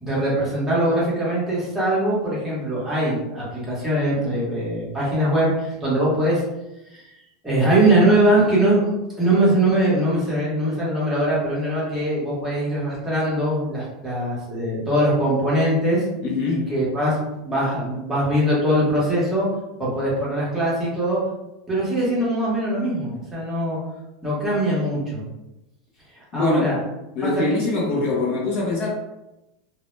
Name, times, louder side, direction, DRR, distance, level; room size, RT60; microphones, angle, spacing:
voice 1, 0.0-6.4 6.9-7.1 7.4-8.9 9.2-16.0 16.5-17.2 17.4-19.5 19.8-21.2 21.7-23.8 24.2-25.3 26.3-26.8 27.2-27.3 27.9-28.0, right 1 dB, 10° right, -7 dB, 0.8 m, -21 dB
voice 2, 16.2-16.7 26.3-26.8 27.2-28.9, left 3 dB, 40° left, -2 dB, 0.4 m, -23 dB
2.0 x 2.0 x 3.0 m, 0.94 s
supercardioid pair, 165°, 3 cm